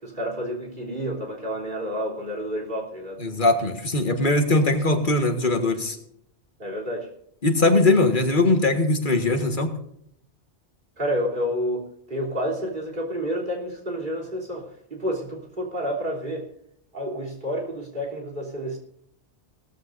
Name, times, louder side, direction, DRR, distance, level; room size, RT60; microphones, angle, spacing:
voice 1, 0.0-3.2 6.6-7.1 11.0-16.5 16.9-18.8, equal, 45° right, 1 dB, 3.7 m, -29 dB
voice 2, 3.2-6.0 7.4-9.7, left 2 dB, 45° left, 5 dB, 1.7 m, -21 dB
18.0 x 14.5 x 2.6 m, 0.73 s
omnidirectional pair, 1.2 m